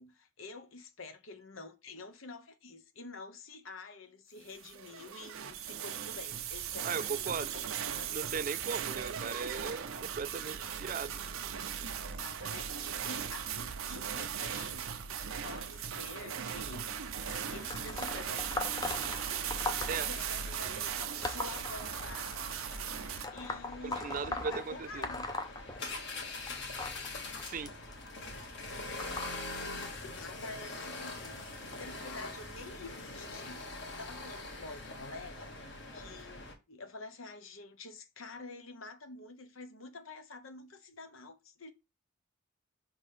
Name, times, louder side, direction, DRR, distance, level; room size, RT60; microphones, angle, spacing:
voice 1, 0.0-7.6 7.9-8.2 12.0-16.9 17.2-18.5 19.6-22.4 23.3-25.4 29.6-41.7, left 3 dB, 70° left, 1.0 m, -48 dB
sound 1, 4.5-23.2, right 8 dB, 75° right, 0.7 m, -38 dB
voice 2, 6.8-7.5 8.1-11.2 19.9-20.1 23.8-25.1 27.4-27.8, right 5 dB, 40° right, 0.4 m, -38 dB
sound 2, 17.2-36.5, left 2 dB, 55° left, 1.6 m, -44 dB
sound 3, 17.3-22.4 23.2-26.2 26.5-31.8 32.6-32.9 33.9-34.0 34.9-35.0 35.7-35.8, left 2 dB, 20° left, 0.6 m, -40 dB
5.6 x 3.8 x 5.0 m
head